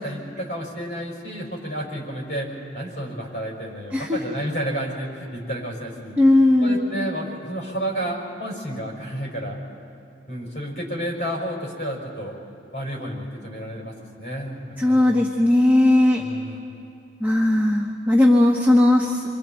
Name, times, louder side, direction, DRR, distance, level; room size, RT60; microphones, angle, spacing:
voice 1, 0.0-6.2 6.6-9.6 10.3-12.3 12.7-15.2 16.2-16.7, equal, 40° left, -3 dB, 5.6 m, -31 dB
voice 2, 6.2-6.9 14.8-16.2 17.2-19.2, left 1 dB, 10° right, -2 dB, 1.2 m, -17 dB
28.5 x 23.5 x 4.4 m, 2.8 s
head